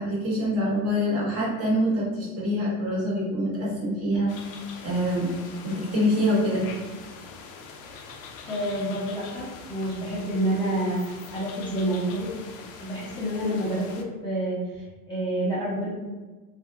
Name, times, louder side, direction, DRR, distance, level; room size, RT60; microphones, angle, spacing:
voice 1, 0.0-4.3 4.8-5.3 5.6-6.6, equal, 30° right, -7 dB, 1.4 m, -25 dB
sound 1, 4.3-14.0, left 5 dB, 55° left, 0.5 m, -43 dB
voice 2, 8.4-12.3 12.8-15.9, right 1 dB, 10° left, -9 dB, 0.5 m, -28 dB
2.6 x 2.4 x 2.4 m, 1.3 s
supercardioid pair, 110°, 45 cm